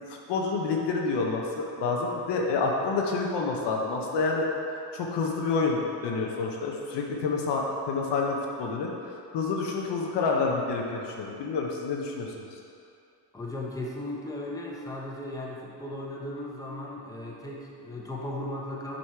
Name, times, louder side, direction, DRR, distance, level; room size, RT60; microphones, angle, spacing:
voice 1, 0.3-4.5 4.9-12.6, left 4 dB, 80° left, -1 dB, 1.0 m, -28 dB
voice 2, 13.3-19.0, left 1 dB, 10° left, -4 dB, 1.0 m, -36 dB
6.2 x 4.1 x 4.7 m, 2.6 s
cardioid pair, 100°, 41 cm